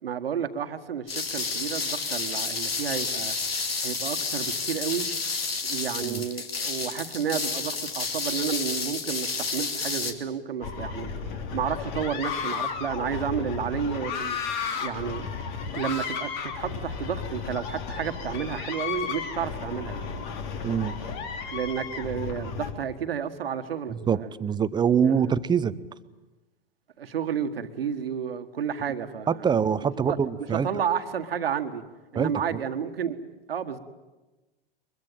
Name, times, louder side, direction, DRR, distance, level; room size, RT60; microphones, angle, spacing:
voice 1, 0.0-3.3 3.8-5.1 5.6-11.1 11.5-14.4 14.8-15.3 15.7-20.0 21.5-24.3 25.0-25.4 27.0-29.4 30.1-30.2 30.5-31.8 32.1-33.2 33.5-33.8, right 8 dB, 75° right, 8 dB, 1.7 m, -31 dB
sound 1, 1.1-10.1, left 4 dB, 80° left, 2.5 m, -30 dB
sound 2, 10.6-22.7, left 6 dB, 55° left, 3.3 m, -33 dB
voice 2, 20.6-21.0 23.9-25.7 29.3-30.7 32.1-32.3, right 7 dB, 15° right, 15 dB, 0.8 m, -24 dB
23.0 x 22.0 x 9.2 m, 1.1 s
hypercardioid pair, 100°, 29 cm